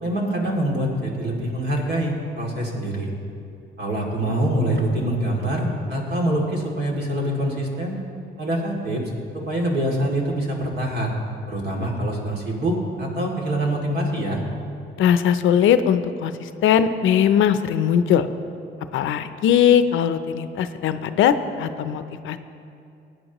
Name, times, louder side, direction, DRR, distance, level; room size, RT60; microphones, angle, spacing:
voice 1, 0.0-3.1 3.8-8.0 8.4-9.0 9.3-11.1 11.5-14.4, right 1 dB, 55° right, -2 dB, 2.6 m, -25 dB
voice 2, 15.0-18.3 18.9-22.4, left 9 dB, 80° left, 11 dB, 0.6 m, -20 dB
18.5 x 9.3 x 3.0 m, 2.6 s
cardioid pair, 90°, 20 cm